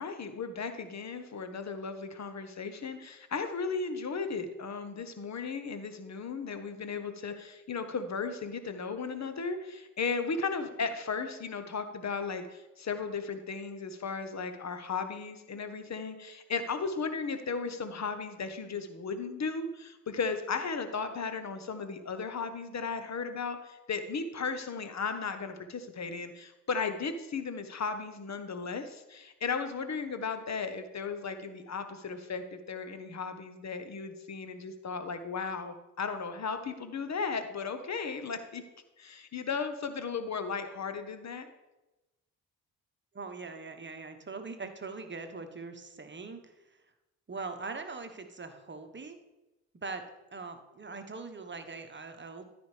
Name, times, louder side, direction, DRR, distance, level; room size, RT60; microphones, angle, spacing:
voice 1, 0.0-38.6 39.0-41.5, left 5 dB, 40° left, 9 dB, 1.1 m, -35 dB
voice 2, 43.1-46.8 47.3-49.2 49.7-50.0 50.3-52.4, right 4 dB, 25° right, 7 dB, 1.2 m, -42 dB
13.5 x 5.2 x 3.3 m, 1.0 s
hypercardioid pair, 45°, 42 cm